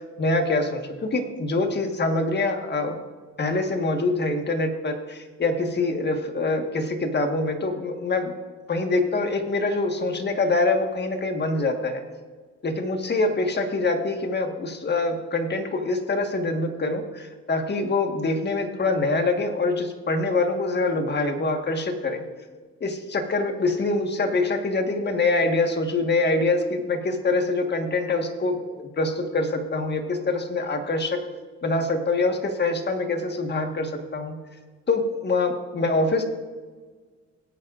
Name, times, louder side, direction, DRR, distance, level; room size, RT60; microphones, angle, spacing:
voice 1, 0.0-2.9 3.4-8.3 8.7-12.0 12.6-22.2 22.8-31.2 31.6-34.4 34.9-36.2, left 2 dB, 35° left, 5 dB, 1.5 m, -25 dB
19.0 x 8.8 x 2.5 m, 1.5 s
cardioid pair, 90°, 30 cm